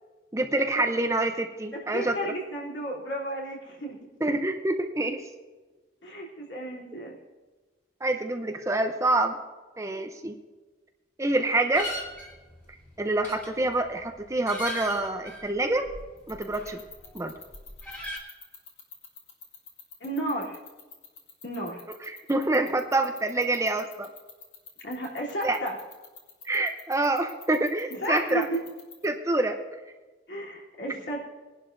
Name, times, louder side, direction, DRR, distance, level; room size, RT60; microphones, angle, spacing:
voice 1, 0.3-2.2 4.2-5.2 8.0-9.4 9.8-10.3 11.2-11.9 13.0-15.9 16.3-16.8 17.1-17.3 22.3-24.1 25.4-25.6 26.4-28.4 29.0-29.6, right 2 dB, 15° right, 6 dB, 0.6 m, -26 dB
voice 2, 1.7-4.0 6.0-7.1 20.0-20.6 21.4-21.8 24.8-25.8 27.9-28.7 30.3-31.3, right 1 dB, 75° left, -3 dB, 3.1 m, -33 dB
sound 1, 11.7-17.1 17.4-18.2, left 1 dB, 10° left, 2.3 m, -39 dB
sound 2, 16.2-29.1, left 7 dB, 40° left, 2.0 m, -45 dB
20.5 x 11.0 x 2.6 m, 1.3 s
head